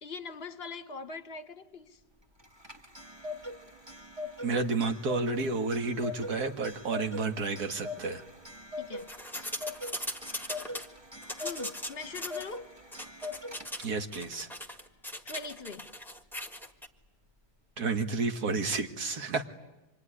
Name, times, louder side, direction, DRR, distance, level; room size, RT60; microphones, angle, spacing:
voice 1, 0.0-2.0 8.8-9.1 11.4-12.7 15.2-15.9, left 4 dB, 40° left, 1.4 m, -42 dB
Clock, 2.4-14.0, left 2 dB, 15° right, 1.6 m, -42 dB
voice 2, 4.4-8.2 13.8-14.5 17.8-19.5, right 4 dB, 65° right, 2.2 m, -31 dB
sound 1, 9.0-10.9 11.2-12.5 12.9-13.9 14.1-16.9, left 1 dB, ahead, 1.4 m, -39 dB
26.0 x 23.5 x 9.9 m
omnidirectional pair, 1.8 m